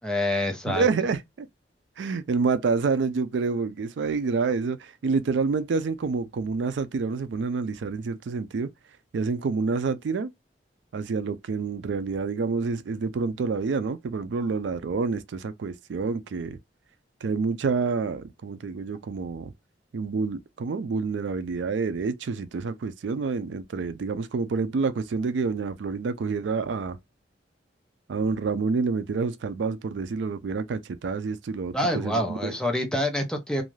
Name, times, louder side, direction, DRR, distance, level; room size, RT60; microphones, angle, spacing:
voice 1, 0.0-0.9 31.7-33.6, left 1 dB, 5° left, 0.5 m, -26 dB
voice 2, 0.7-1.5 2.0-8.7 9.1-10.3 10.9-16.6 17.2-19.5 19.9-27.0 28.1-32.5, right 4 dB, 80° right, 0.4 m, -28 dB
2.5 x 2.3 x 3.1 m
head